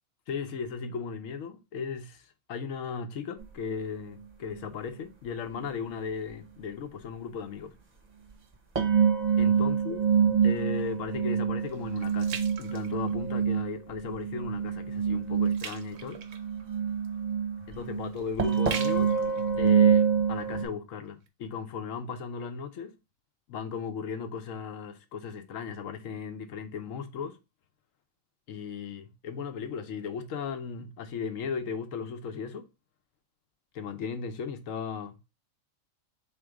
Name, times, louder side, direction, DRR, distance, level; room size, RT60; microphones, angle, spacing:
voice 1, 0.3-7.7 9.4-10.0 10.4-16.2 17.7-19.1 19.6-23.0 23.5-27.4 28.5-32.7 33.7-35.2, left 6 dB, 75° left, 1.1 m, -36 dB
sound 1, 3.4-3.5 5.5-5.7 8.8-20.6, right 7 dB, 35° right, 0.8 m, -26 dB
sound 2, 10.4-13.7 14.1-14.4 14.8-20.7 21.2-21.3, right 7 dB, 85° right, 1.1 m, -43 dB
3.6 x 3.1 x 4.7 m
omnidirectional pair, 1.4 m